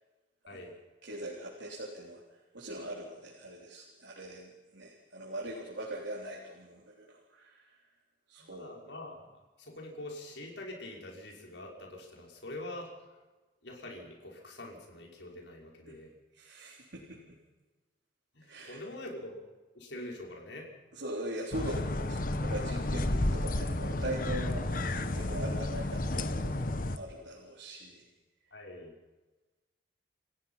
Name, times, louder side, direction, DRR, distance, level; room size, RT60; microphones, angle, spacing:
voice 1, 1.0-2.2 2.5-7.6 8.3-8.7 15.9-16.0 16.4-17.2 18.5-18.8 20.9-28.0, right 1 dB, 80° right, -3 dB, 3.8 m, -41 dB
voice 2, 8.4-9.3 9.6-12.9 13.6-16.1 18.4-19.4 19.7-20.7 28.5-28.9, left 1 dB, 75° left, 0 dB, 5.8 m, -44 dB
sound 1, 21.5-27.0, left 1 dB, 45° left, 1.1 m, -32 dB
29.5 x 16.0 x 5.8 m, 1.2 s
head